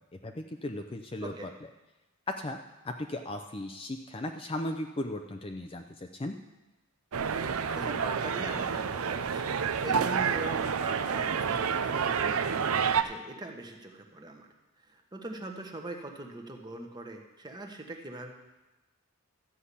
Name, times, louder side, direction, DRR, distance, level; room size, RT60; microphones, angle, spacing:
voice 1, 0.2-1.5 2.3-2.6 2.8-5.8 6.1-6.4, left 1 dB, 25° left, 5 dB, 0.5 m, -36 dB
sound 1, 7.1-13.0, right 6 dB, 70° right, 0.6 m, -29 dB
voice 2, 7.6-9.5 9.8-14.5 14.8-18.3, right 2 dB, 20° right, 3 dB, 1.1 m, -41 dB
13.0 x 5.6 x 8.3 m, 1.0 s
head